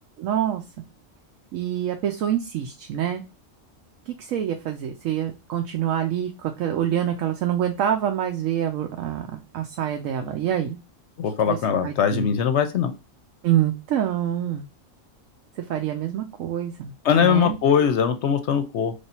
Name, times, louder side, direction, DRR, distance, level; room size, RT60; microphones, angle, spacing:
voice 1, 0.2-0.6 1.5-3.2 4.1-10.8 11.4-11.6 11.8-12.3 13.4-14.7 15.6-16.9 17.2-17.6, right 10 dB, 85° right, 4 dB, 1.0 m, -26 dB
voice 2, 11.2-12.9 17.0-18.9, left 8 dB, 70° left, 9 dB, 0.8 m, -21 dB
3.3 x 2.6 x 4.2 m, 0.27 s
omnidirectional pair, 1.3 m